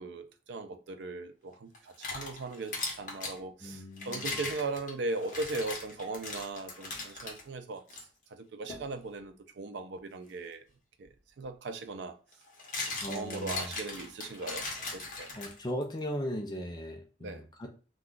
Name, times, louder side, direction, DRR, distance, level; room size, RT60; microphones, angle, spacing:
voice 1, 0.0-8.0 8.3-10.6 11.0-11.1 11.4-12.2 12.9-15.3 17.2-17.4, right 3 dB, 75° right, 0.4 m, -38 dB
sound 1, 1.7-3.4 4.0-7.4 7.9-8.0 8.7-8.9 11.0-11.1 12.3-15.8, left 3 dB, 45° left, 0.8 m, -39 dB
voice 2, 3.6-4.4 13.0-13.7 15.4-17.7, equal, 25° left, 0.3 m, -38 dB
2.3 x 2.2 x 3.6 m
head